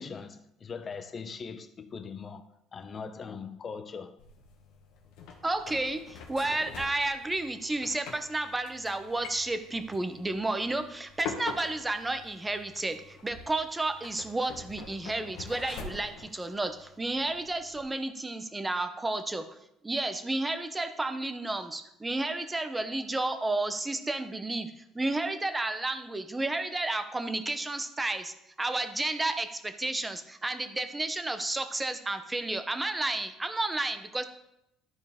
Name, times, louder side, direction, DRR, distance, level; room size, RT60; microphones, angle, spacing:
voice 1, 0.0-2.4 2.7-4.2, left 5 dB, 35° left, 0.7 m, -40 dB
sound 1, 4.2-17.8, left 5 dB, 75° left, 1.3 m, -45 dB
voice 2, 5.4-19.5 19.8-34.2, right 2 dB, 15° right, 0.8 m, -32 dB
12.5 x 4.4 x 3.6 m
cardioid pair, 105°, 0 cm